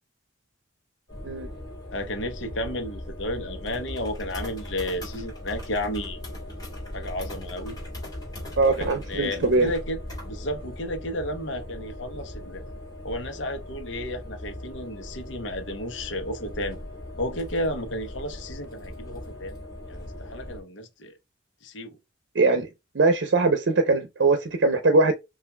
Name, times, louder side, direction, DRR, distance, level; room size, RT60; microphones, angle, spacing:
sound 1, 1.1-20.6, left 1 dB, 20° left, 2.4 m, -39 dB
voice 1, 1.9-6.2 6.9-7.8 8.8-10.0 10.2-12.6 13.0-16.8 17.2-19.6 19.9-21.1 21.6-22.0, left 1 dB, 80° left, 0.9 m, -32 dB
voice 2, 8.6-9.7 22.3-22.7 22.9-25.1, right 3 dB, 65° right, 0.6 m, -21 dB
5.6 x 2.5 x 2.2 m
head